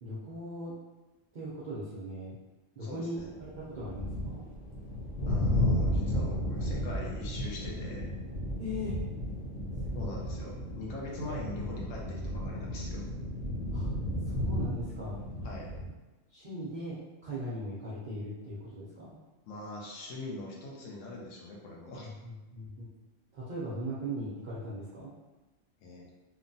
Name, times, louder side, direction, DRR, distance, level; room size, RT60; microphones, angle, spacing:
voice 1, 0.0-0.7 1.3-2.4 2.8-4.5 8.6-9.0 9.9-10.2 13.7-13.9 14.3-15.2 16.3-19.2 22.0-22.9 23.3-25.1, equal, 60° right, -8 dB, 0.5 m, -39 dB
voice 2, 2.8-3.3 5.3-8.0 9.9-13.1 15.4-15.8 19.5-22.1 25.8-26.1, left 2 dB, 75° left, -2 dB, 1.0 m, -42 dB
sound 1, 3.2-15.9, equal, 60° left, 0.7 m, -33 dB
2.9 x 2.2 x 2.6 m, 1.1 s
omnidirectional pair, 1.3 m